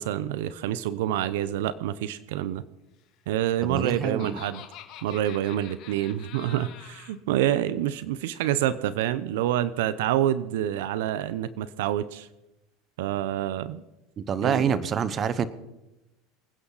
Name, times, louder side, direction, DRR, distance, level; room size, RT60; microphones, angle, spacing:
voice 1, 0.0-2.6 3.3-4.6 5.0-12.3 13.0-13.8 14.4-14.8, right 12 dB, 85° right, 15 dB, 0.7 m, -27 dB
Laughter, 3.4-7.2, left 11 dB, 55° left, 2.0 m, -46 dB
voice 2, 3.6-4.4 14.2-15.5, right 7 dB, 35° right, 14 dB, 1.1 m, -27 dB
25.5 x 9.8 x 4.1 m, 1.0 s
supercardioid pair, 120°, 0 cm